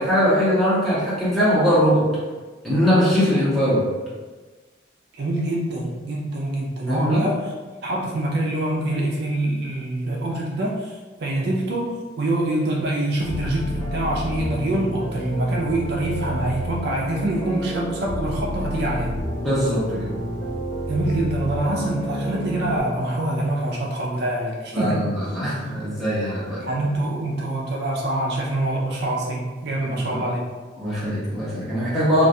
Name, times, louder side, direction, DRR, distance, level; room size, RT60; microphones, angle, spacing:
voice 1, 0.0-2.0 2.6-3.9 6.9-7.2 19.4-20.2 24.7-26.6 30.1-30.2 30.8-32.3, equal, ahead, -11 dB, 0.7 m, -21 dB
voice 2, 5.1-7.5 7.8-19.2 20.9-25.1 26.6-30.5, right 1 dB, 55° right, -2 dB, 0.3 m, -25 dB
sound 1, 13.2-22.8, equal, 75° left, 0.9 m, -29 dB
2.3 x 2.2 x 2.6 m, 1.3 s
head